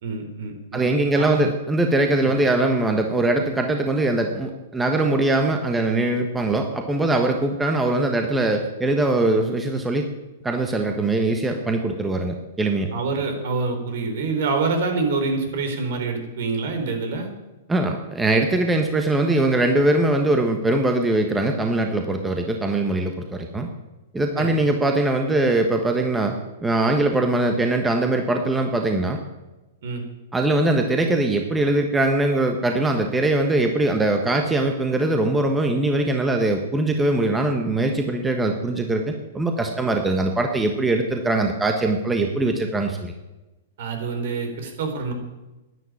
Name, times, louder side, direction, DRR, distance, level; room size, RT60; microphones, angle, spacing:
voice 1, 0.0-1.5 2.2-2.3 12.9-17.3 24.4-24.6 29.8-30.0 43.8-45.1, right 4 dB, 65° right, 5 dB, 4.1 m, -26 dB
voice 2, 0.7-10.0 10.4-12.9 17.7-23.7 24.1-26.3 26.6-29.2 30.3-43.1, right 2 dB, 10° right, 4 dB, 1.4 m, -22 dB
11.0 x 10.0 x 9.8 m, 1.0 s
hypercardioid pair, 145°, 0 cm